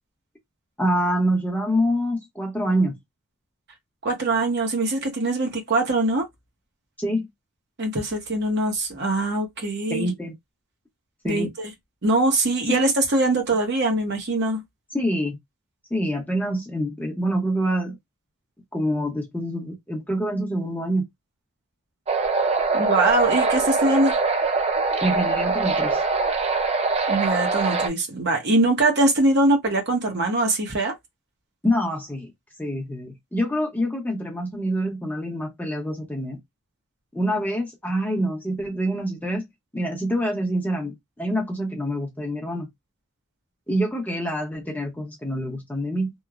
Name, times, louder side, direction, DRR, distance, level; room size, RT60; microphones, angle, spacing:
voice 1, 0.8-3.0 7.0-7.3 9.9-10.3 11.2-11.5 12.7-12.8 14.9-15.4 15.9-18.0 18.7-21.1 25.0-26.0 31.6-32.3 32.6-36.4 37.1-39.5 39.7-42.7 43.7-46.1, equal, 10° left, 0.7 m, -26 dB
voice 2, 4.0-6.2 7.8-10.1 11.2-11.7 12.0-14.6 22.7-24.2 27.1-30.9, right 2 dB, 50° right, 0.8 m, -22 dB
sound 1, 22.1-27.9, right 4 dB, 25° right, 0.3 m, -23 dB
3.0 x 2.0 x 2.3 m
head